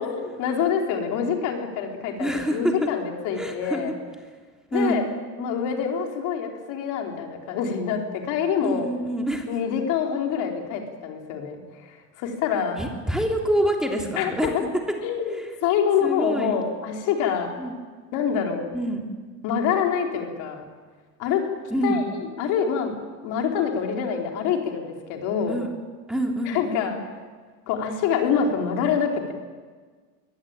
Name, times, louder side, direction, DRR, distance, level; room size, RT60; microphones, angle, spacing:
voice 1, 0.0-3.9 4.7-5.1 5.4-8.9 9.5-12.8 14.2-14.7 15.0-17.5 18.1-18.7 19.4-20.6 21.2-21.4 21.8-22.9 23.2-25.6 26.5-27.0 27.7-29.3, left 7 dB, 60° left, 2 dB, 4.3 m, -26 dB
voice 2, 2.2-2.7 3.3-3.8 4.7-5.0 8.6-9.5 10.3-10.4 12.8-14.5 15.3-15.5 16.0-16.5 17.6-17.7 18.7-19.0 21.7-22.0 25.5-25.7 26.1-26.9, right 1 dB, ahead, 1 dB, 3.2 m, -26 dB
23.5 x 18.5 x 9.1 m, 1.5 s
supercardioid pair, 130°, 34 cm